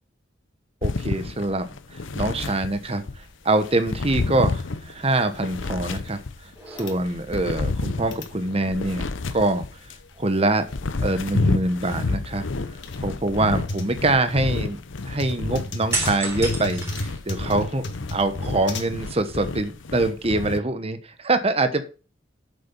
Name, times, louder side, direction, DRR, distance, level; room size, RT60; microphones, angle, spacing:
sound 1, 0.8-3.2 3.6-6.6 7.0-10.0 10.5-20.6, left 3 dB, 90° left, 0.8 m, -30 dB
voice 1, 0.8-10.7 11.0-12.4 13.0-14.8 15.0-17.8 18.1-21.9, right 2 dB, 30° right, 9 dB, 1.1 m, -24 dB
sound 2, 3.1-19.2, left 1 dB, 65° left, 1.7 m, -38 dB
sound 3, 5.8-6.1 6.5-7.3 8.5-9.8 10.1-10.3 15.9-17.8 18.3-19.2, right 2 dB, 15° right, 3.5 m, -33 dB
8.7 x 7.0 x 5.4 m, 0.34 s
head